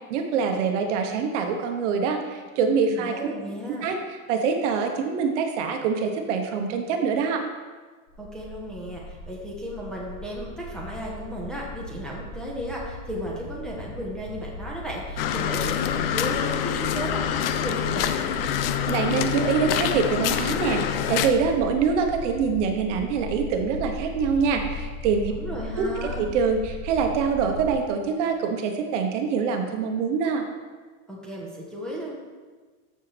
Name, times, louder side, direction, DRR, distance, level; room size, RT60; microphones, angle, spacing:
voice 1, 0.1-3.3 3.8-4.0 4.3-7.5 18.9-25.3 25.8-30.4, right 5 dB, 55° right, 4 dB, 1.1 m, -25 dB
voice 2, 2.8-3.9 8.2-18.1 25.3-26.2 31.1-32.1, equal, ahead, -5 dB, 1.1 m, -35 dB
sound 1, 8.1-27.7, equal, 60° left, 3.2 m, -37 dB
sound 2, 15.2-21.3, left 10 dB, 45° left, 0.5 m, -26 dB
13.5 x 6.6 x 3.4 m, 1.4 s
supercardioid pair, 170°, 43 cm